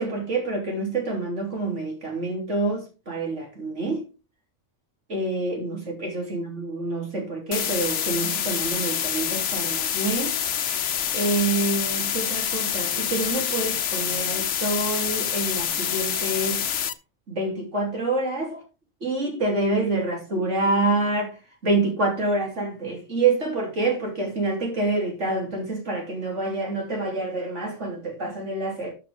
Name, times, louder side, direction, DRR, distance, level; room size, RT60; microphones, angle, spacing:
voice 1, 0.0-4.1 5.1-10.4 11.1-16.7 17.3-18.6 19.0-21.3 21.6-28.9, right 2 dB, 85° right, 3.6 m, -27 dB
sound 1, 7.5-16.9, left 9 dB, 80° left, 1.2 m, -27 dB
12.5 x 6.6 x 3.6 m
omnidirectional pair, 1.2 m